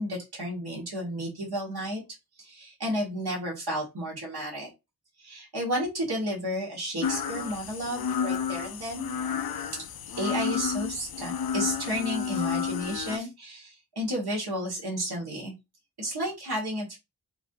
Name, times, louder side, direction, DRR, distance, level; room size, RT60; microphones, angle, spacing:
voice 1, 0.0-2.0 2.4-4.7 5.2-9.1 10.2-15.5 16.0-17.0, equal, 75° right, -3 dB, 1.7 m, -32 dB
sound 1, 7.0-13.2, left 7 dB, 65° left, 0.5 m, -31 dB
4.8 x 2.6 x 2.7 m, 0.23 s
wide cardioid pair, 65°, 39 cm